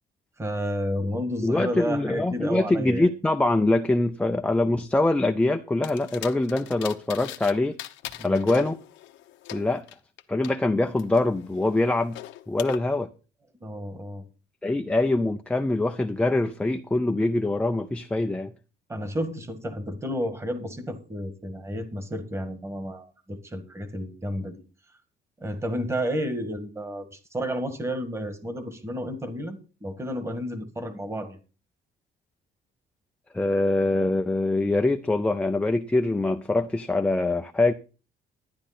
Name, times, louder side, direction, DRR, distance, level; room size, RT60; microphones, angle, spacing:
voice 1, 0.4-3.1 8.2-8.4 13.6-14.2 18.9-24.6 25.4-31.4, equal, 15° right, 1.6 m, -31 dB
voice 2, 1.4-7.8 8.2-8.8 9.5-9.9 10.3-12.2 12.5-13.1 14.6-18.5 33.3-37.7, left 2 dB, 5° left, 0.5 m, -24 dB
sound 1, 5.8-7.5 7.8-10.5 11.0-12.8, left 14 dB, 85° left, 1.0 m, -40 dB
12.0 x 10.5 x 4.2 m
cardioid pair, 155°, 19 cm